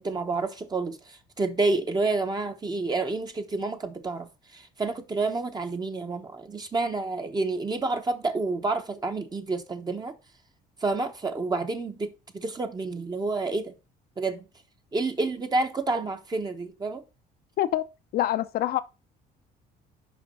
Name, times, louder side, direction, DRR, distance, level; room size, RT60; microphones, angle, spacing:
voice 1, 0.0-10.1 10.8-13.7 14.2-14.4 14.9-17.0, right 3 dB, 25° right, 1.0 m, -29 dB
voice 2, 18.1-18.8, left 13 dB, 65° left, 0.7 m, -25 dB
6.0 x 5.1 x 5.4 m
cardioid pair, 110°, 17 cm